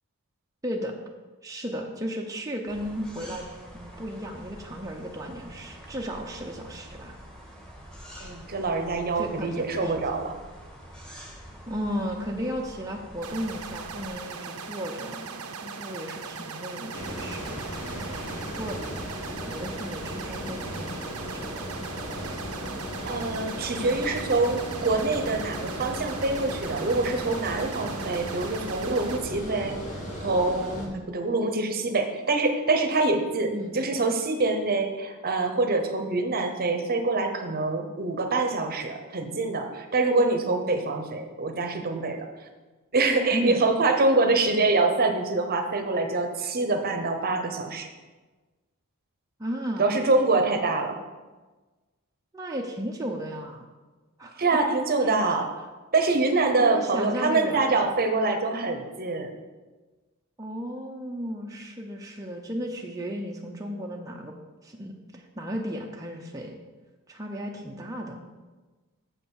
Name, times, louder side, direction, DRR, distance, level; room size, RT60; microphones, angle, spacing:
voice 1, 0.6-0.9 1.4-3.4 3.7-7.2 9.2-10.0 11.7-17.6 17.9-18.8 19.1-21.7 22.2-22.4 23.6-24.2 30.7-31.1 33.5-33.8 43.3-43.6 49.4-49.9 52.3-53.7 54.2-54.4 55.2-55.4 56.6-57.8 60.4-64.4 64.6-66.6 67.1-68.2, equal, 15° right, 0 dB, 0.7 m, -35 dB
sound 1, 2.7-14.1, equal, 5° left, 1.6 m, -46 dB
voice 2, 8.2-10.4 23.0-29.8 30.2-30.7 31.1-42.3 42.9-47.9 49.8-51.0 54.4-55.5 55.9-59.3 67.6-67.7, right 3 dB, 45° right, 6 dB, 0.9 m, -25 dB
sound 2, 13.2-29.2, right 5 dB, 85° right, 0.7 m, -39 dB
Water, 16.9-30.9, equal, 85° left, 2.4 m, -36 dB
7.3 x 5.6 x 6.3 m, 1.3 s
head